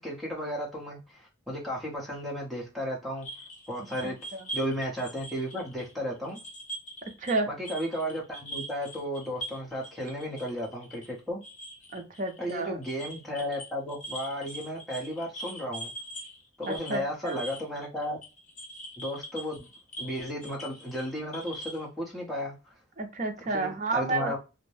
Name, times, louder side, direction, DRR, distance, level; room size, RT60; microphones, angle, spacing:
voice 1, 0.0-3.3 3.7-4.2 4.5-6.4 7.5-11.4 12.4-15.9 16.6-18.2 19.0-19.7 20.0-22.7 23.5-24.4, equal, ahead, -4 dB, 0.8 m, -34 dB
sound 1, 3.2-7.4 7.6-21.9, right 1 dB, 40° left, 0.6 m, -43 dB
voice 2, 4.0-4.5 7.2-7.5 11.9-12.8 16.7-17.4 23.0-24.4, right 2 dB, 40° right, 4 dB, 0.5 m, -31 dB
2.6 x 2.1 x 3.1 m, 0.29 s
head